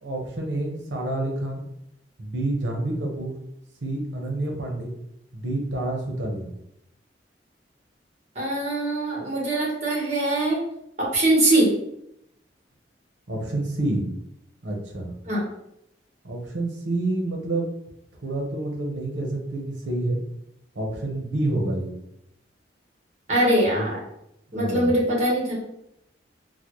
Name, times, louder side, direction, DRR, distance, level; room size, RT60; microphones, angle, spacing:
voice 1, 0.0-1.7 2.2-3.3 3.8-4.9 5.3-6.5 13.3-14.1 14.6-15.1 16.2-17.7 18.2-20.2 20.7-21.9 24.5-25.0, right 2 dB, 75° right, 1 dB, 0.8 m, -28 dB
voice 2, 8.3-10.6 11.0-11.7 15.2-15.4 23.3-24.0 24.5-25.5, right 1 dB, 40° right, -4 dB, 1.3 m, -22 dB
3.9 x 2.2 x 3.0 m, 0.80 s
head